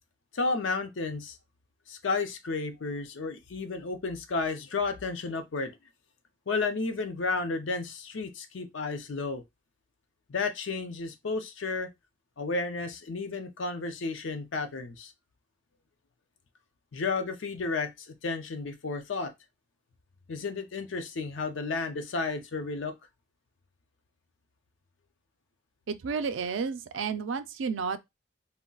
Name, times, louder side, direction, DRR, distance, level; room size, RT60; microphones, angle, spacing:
voice 1, 0.3-1.4 1.9-5.8 6.5-9.4 10.3-11.9 12.4-15.1 16.9-19.3 20.3-23.0, left 3 dB, 80° left, 0.5 m, -32 dB
voice 2, 25.9-28.0, right 5 dB, 80° right, 0.4 m, -31 dB
2.3 x 2.1 x 3.8 m
head